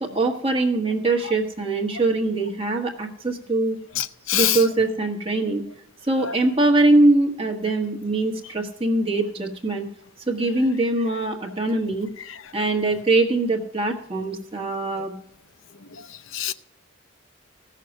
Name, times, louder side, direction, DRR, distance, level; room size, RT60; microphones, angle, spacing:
voice 1, 0.0-3.8 4.3-5.6 6.1-9.9 10.3-12.1 12.5-15.1, right 2 dB, 30° right, 1.4 m, -22 dB
voice 2, 4.0-4.6 6.2-6.4 12.2-12.4 15.0-15.1 15.9-16.5, left 11 dB, 80° left, 0.6 m, -26 dB
16.0 x 6.5 x 5.3 m
head